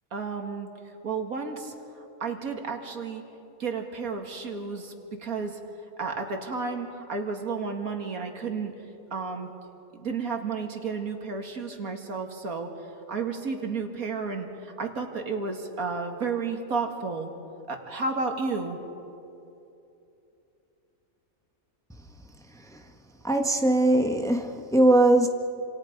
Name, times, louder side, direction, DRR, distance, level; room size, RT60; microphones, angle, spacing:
voice 1, 0.1-0.7 1.0-3.2 3.6-4.9 5.2-5.6 6.0-8.7 9.1-9.5 10.0-12.7 13.1-17.3 17.7-18.8, right 4 dB, 90° right, 4 dB, 2.5 m, -32 dB
voice 2, 23.2-25.3, right 1 dB, ahead, 3 dB, 1.2 m, -20 dB
28.5 x 27.0 x 5.3 m, 2.8 s
omnidirectional pair, 1.5 m